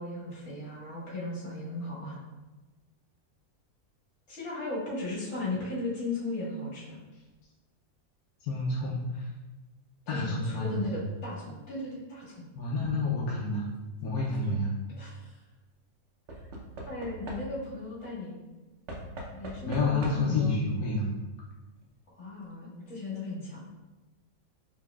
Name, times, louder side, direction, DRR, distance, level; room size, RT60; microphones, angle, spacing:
voice 1, 0.0-2.2 4.3-7.0 10.1-12.4 15.0-15.4 16.9-18.4 19.3-20.6 22.1-23.6, left 2 dB, 55° left, -7 dB, 1.9 m, -36 dB
voice 2, 8.4-9.3 10.1-11.0 12.5-13.7 14.0-14.7 19.6-21.1, left 3 dB, 85° left, -4 dB, 1.1 m, -29 dB
Knock / Wood, 14.1-14.6 16.3-17.8 18.9-20.5 21.5-21.6 21.8-21.9, right 1 dB, 60° right, 0.9 m, -42 dB
4.7 x 3.3 x 2.3 m, 1.2 s
omnidirectional pair, 1.6 m